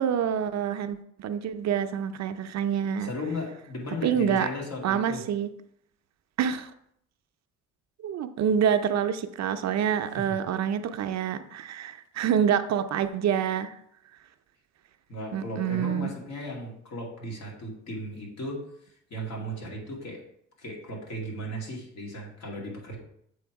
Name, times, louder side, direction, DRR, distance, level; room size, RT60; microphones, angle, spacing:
voice 1, 0.0-3.1 4.0-4.5 4.8-5.5 6.4-6.7 8.0-13.7 15.3-16.1, right 8 dB, 60° right, 9 dB, 0.6 m, -27 dB
voice 2, 3.0-5.2 10.2-10.4 15.1-18.7 19.1-20.2 20.6-23.0, left 1 dB, 60° left, -2 dB, 2.3 m, -36 dB
7.8 x 3.3 x 4.6 m, 0.71 s
cardioid pair, 90°, 30 cm